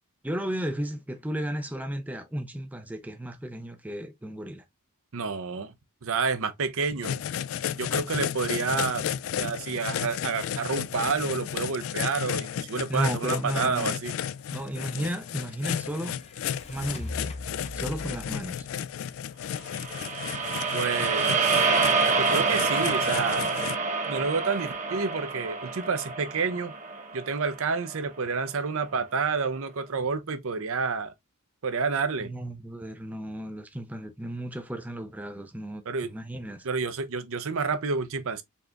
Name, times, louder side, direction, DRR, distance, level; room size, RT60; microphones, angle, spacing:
voice 1, 0.2-4.6 12.9-13.9 14.5-16.2 16.7-17.4 17.7-18.7 32.2-36.7, equal, 5° right, 0.4 m, -34 dB
voice 2, 5.1-5.7 6.0-7.2 7.7-9.1 9.4-14.1 20.7-21.7 22.2-23.5 24.1-26.7 27.1-31.1 31.6-32.3 35.9-36.1 36.6-38.4, right 4 dB, 65° right, 0.7 m, -29 dB
sound 1, 7.0-23.7, left 9 dB, 65° left, 0.3 m, -33 dB
sound 2, 14.4-20.1, left 2 dB, 30° left, 0.6 m, -42 dB
sound 3, 19.7-28.0, right 4 dB, 35° right, 0.9 m, -27 dB
4.2 x 3.4 x 2.4 m
head